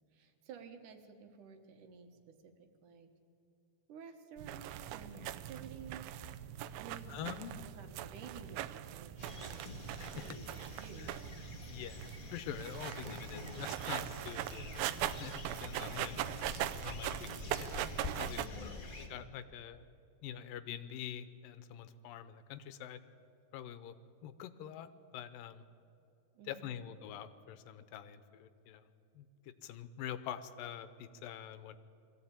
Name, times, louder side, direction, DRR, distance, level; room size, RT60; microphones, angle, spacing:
voice 1, 0.1-3.1 3.9-6.1 6.8-11.4 15.7-16.2 18.4-18.9 26.3-26.8, right 5 dB, 70° right, 6 dB, 2.6 m, -53 dB
sound 1, 4.4-18.5, right 12 dB, 85° right, 2.4 m, -41 dB
voice 2, 7.1-7.6 10.0-10.4 11.0-11.1 11.7-16.2 16.8-17.8 18.2-19.9 20.2-23.0 23.5-24.0 24.2-24.9 25.1-25.6 26.5-28.8 29.2-31.8, left 10 dB, 85° left, 13 dB, 2.5 m, -46 dB
sound 2, 9.2-19.1, left 3 dB, 45° left, 0.6 m, -47 dB
22.0 x 14.5 x 8.8 m, 2.6 s
omnidirectional pair, 4.0 m